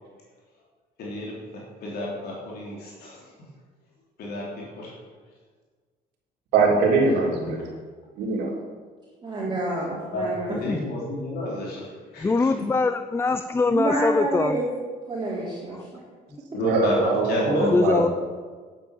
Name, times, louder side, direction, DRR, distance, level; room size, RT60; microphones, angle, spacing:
voice 1, 1.0-1.3 1.8-3.2 4.2-4.9 10.1-12.5 16.5-18.0, left 1 dB, 70° left, -4 dB, 3.3 m, -30 dB
voice 2, 6.5-7.6 8.2-8.5 16.6-18.1, right 3 dB, 85° right, -2 dB, 3.3 m, -22 dB
voice 3, 9.2-10.6 13.7-14.6 15.1-15.9, right 2 dB, 25° right, -7 dB, 3.5 m, -28 dB
voice 4, 12.2-14.6 17.5-18.1, left 3 dB, 15° left, 11 dB, 0.4 m, -23 dB
10.0 x 8.7 x 7.2 m, 1.5 s
cardioid pair, 110°, 17 cm